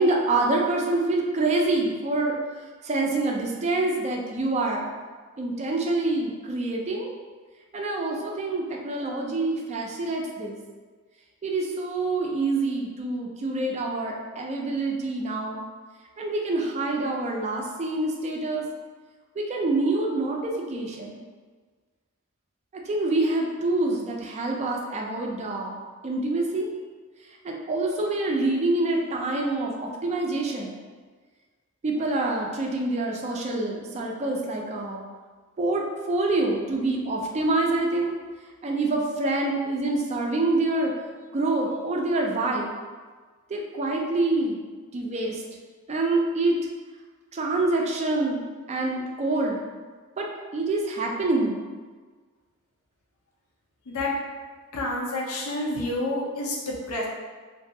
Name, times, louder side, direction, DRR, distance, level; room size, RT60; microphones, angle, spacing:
voice 1, 0.0-2.3 2.8-4.9 5.4-7.1 7.7-10.6 11.4-15.6 16.2-18.6 19.4-21.2 22.9-25.8 26.0-26.7 27.4-30.7 31.8-35.0 35.6-38.1 38.6-40.9 41.3-42.7 43.5-44.6 44.9-45.4 45.9-46.6 47.3-49.6 50.2-50.3 50.5-51.6, right 2 dB, 30° right, 0 dB, 0.3 m, -26 dB
voice 2, 54.7-57.1, left 2 dB, 75° left, -3 dB, 0.5 m, -29 dB
2.6 x 2.3 x 2.6 m, 1.4 s
head